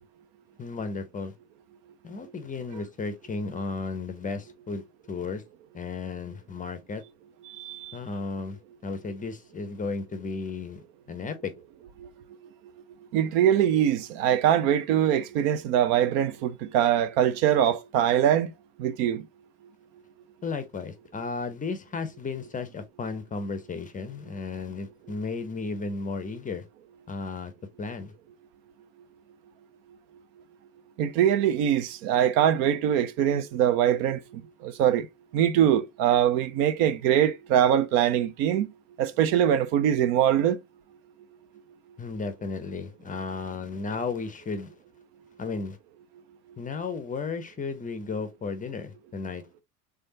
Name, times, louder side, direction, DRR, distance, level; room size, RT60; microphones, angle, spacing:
voice 1, 0.6-1.3 2.0-5.4 5.7-7.0 7.9-11.5 20.4-26.7 27.1-27.5 27.8-28.1 42.0-44.7 45.4-45.8 46.6-49.6, left 4 dB, 20° left, 0.6 m, -34 dB
voice 2, 7.5-8.0 13.1-18.5 18.8-19.2 31.0-34.2 34.6-35.1 35.3-38.7 39.0-40.6, right 10 dB, 55° right, 0.6 m, -23 dB
3.4 x 3.3 x 2.7 m
hypercardioid pair, 75°, 45 cm